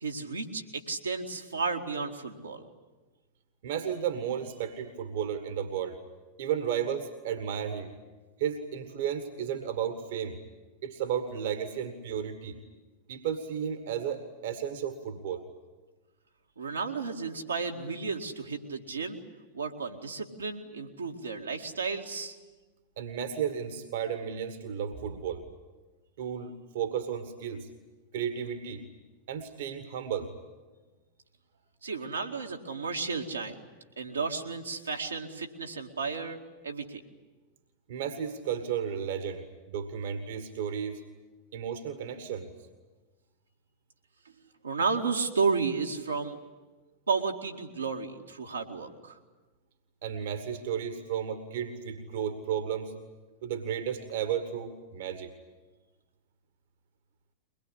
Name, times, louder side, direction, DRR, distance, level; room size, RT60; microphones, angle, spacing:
voice 1, 0.0-2.6 16.6-19.2 19.5-22.4 31.8-33.6 34.0-37.0 44.6-46.4 47.1-49.2, right 4 dB, 75° right, 1 dB, 2.1 m, -32 dB
voice 2, 3.6-6.0 6.4-7.9 8.4-10.4 10.8-12.6 13.1-15.4 23.0-25.5 26.2-27.7 28.1-28.9 29.3-30.3 37.9-41.0 41.5-42.5 50.0-52.9 53.4-55.3, right 8 dB, 55° right, 9 dB, 1.8 m, -33 dB
23.0 x 21.0 x 9.9 m, 1.2 s
figure-of-eight pair, 90°, 0 cm